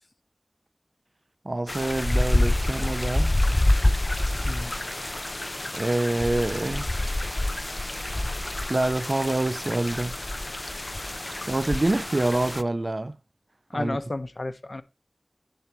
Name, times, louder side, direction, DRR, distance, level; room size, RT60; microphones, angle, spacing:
voice 1, 1.4-3.3 5.7-6.9 8.7-10.2 11.5-13.2 13.7-14.0, right 2 dB, 55° right, 0.4 m, -26 dB
sound 1, 1.7-12.6, left 1 dB, 40° left, 0.6 m, -27 dB
voice 2, 13.7-14.8, left 2 dB, 60° left, 1.1 m, -32 dB
10.5 x 9.1 x 3.1 m
wide cardioid pair, 45°, 0 cm